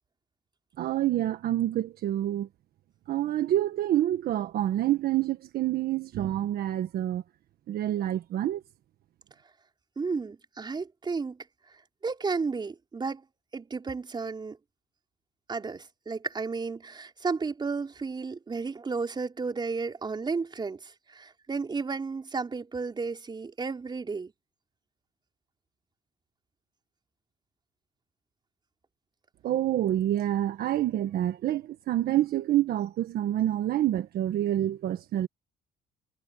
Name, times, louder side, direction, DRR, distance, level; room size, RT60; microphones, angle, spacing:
voice 1, 0.8-2.5 3.1-7.2 7.7-8.6 29.4-35.3, right 13 dB, 65° right, 1.4 m, -27 dB
voice 2, 10.0-11.4 12.0-13.2 13.5-14.6 15.5-24.3, right 4 dB, 25° right, 5.1 m, -33 dB
cardioid pair, 110°, 17 cm